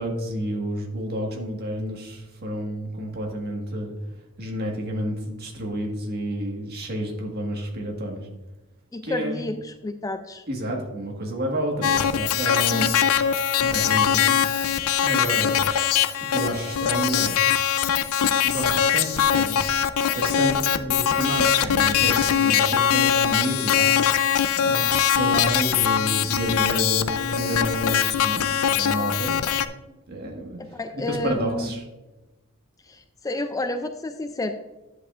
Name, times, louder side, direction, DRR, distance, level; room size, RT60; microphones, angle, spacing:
voice 1, 0.0-3.9 4.4-8.3 9.0-9.5 10.5-12.9 13.6-14.7 15.0-15.6 16.3-17.4 18.4-19.7 20.1-23.9 24.6-29.4 30.1-30.6 30.9-31.8, right 1 dB, 45° right, 1 dB, 1.6 m, -30 dB
voice 2, 8.9-10.4 12.7-12.9 30.6-31.7 32.8-34.5, left 2 dB, 15° left, 8 dB, 0.3 m, -30 dB
sound 1, 11.8-29.7, left 9 dB, 85° left, 0.4 m, -22 dB
10.0 x 7.7 x 2.4 m, 1.1 s
head